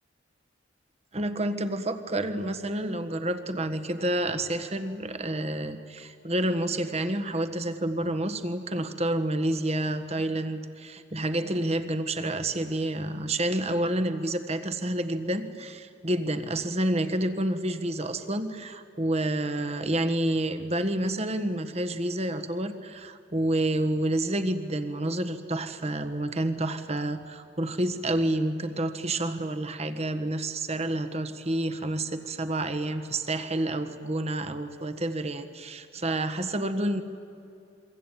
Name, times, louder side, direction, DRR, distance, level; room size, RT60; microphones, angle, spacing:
voice 1, 1.1-37.0, right 1 dB, 35° right, 9 dB, 1.5 m, -29 dB
28.0 x 23.5 x 9.2 m, 2.6 s
head